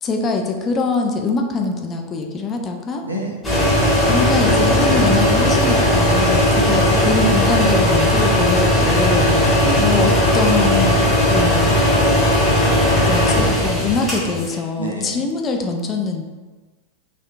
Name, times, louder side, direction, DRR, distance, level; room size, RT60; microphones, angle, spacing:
voice 1, 0.0-3.0 4.1-9.2 9.6-11.8 13.1-16.2, left 4 dB, 25° left, 2 dB, 0.3 m, -23 dB
voice 2, 3.0-3.4 6.6-7.1 9.1-9.9 14.8-15.2, right 1 dB, 80° right, -1 dB, 0.5 m, -27 dB
sound 1, 3.4-14.5, left 1 dB, 5° left, 1.0 m, -16 dB
2.8 x 2.4 x 2.2 m, 1.3 s
figure-of-eight pair, 90°, 0 cm